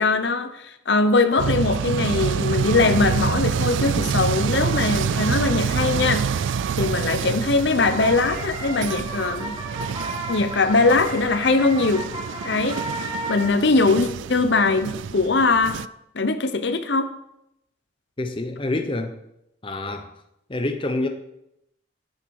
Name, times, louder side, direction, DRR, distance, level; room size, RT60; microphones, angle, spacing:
voice 1, 0.0-6.3 6.8-9.6 10.3-12.1 12.4-12.8 13.3-15.8 16.1-17.1, left 3 dB, 65° left, 10 dB, 0.8 m, -21 dB
Train comming, 1.4-15.9, right 6 dB, 80° right, 0.4 m, -27 dB
sound 1, 7.6-13.5, right 2 dB, 25° right, 2.1 m, -33 dB
voice 2, 18.2-19.1 19.6-20.1 20.5-21.1, left 2 dB, 25° left, 6 dB, 0.7 m, -27 dB
10.5 x 9.6 x 4.7 m, 0.83 s
head